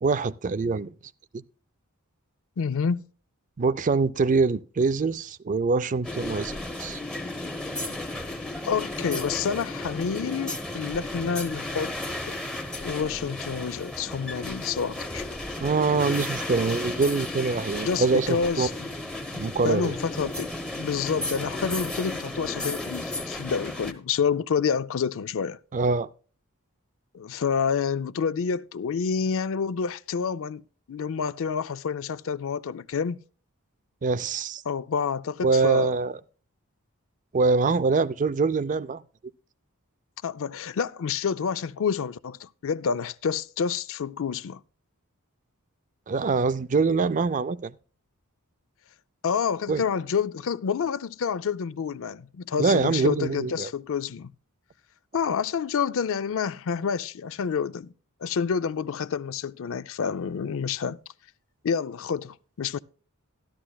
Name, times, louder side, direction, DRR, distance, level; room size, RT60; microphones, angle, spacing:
voice 1, 0.0-0.9 1.3-1.4 3.6-7.0 15.6-18.7 19.3-19.9 25.7-26.1 34.0-34.6 35.4-36.1 37.3-39.0 46.1-47.7 49.7-49.8 52.6-53.7, right 4 dB, 35° right, 0.4 m, -24 dB
voice 2, 2.6-3.0 8.7-11.9 12.3-12.4 12.8-15.2 17.8-18.9 19.3-20.5 20.8-25.6 27.1-33.2 34.6-35.9 40.2-44.6 49.2-54.3 55.1-57.9 58.2-61.0 61.6-62.8, left 6 dB, 60° left, 0.4 m, -28 dB
sound 1, 6.0-23.9, left 2 dB, 5° left, 1.1 m, -34 dB
13.0 x 12.5 x 2.3 m
head